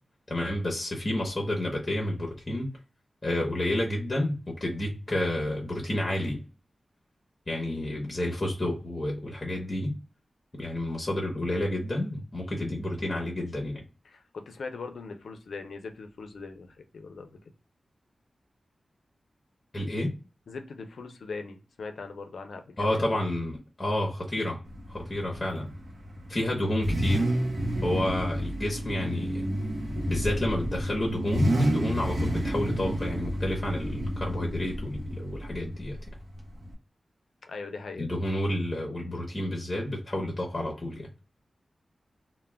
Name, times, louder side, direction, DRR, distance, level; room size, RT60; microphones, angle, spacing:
voice 1, 0.3-2.7 3.2-6.4 7.5-10.0 10.5-13.8 19.7-20.1 22.8-24.6 24.9-25.7 26.3-27.3 27.8-29.5 30.1-36.0 38.0-41.1, left 1 dB, 30° left, 0.7 m, -30 dB
voice 2, 14.1-17.3 20.5-23.2 37.4-38.1, left 4 dB, 90° left, 0.4 m, -40 dB
Car / Idling / Accelerating revving vroom, 24.7-36.7, equal, 80° right, 0.6 m, -30 dB
2.2 x 2.1 x 3.2 m
wide cardioid pair, 75°, 0 cm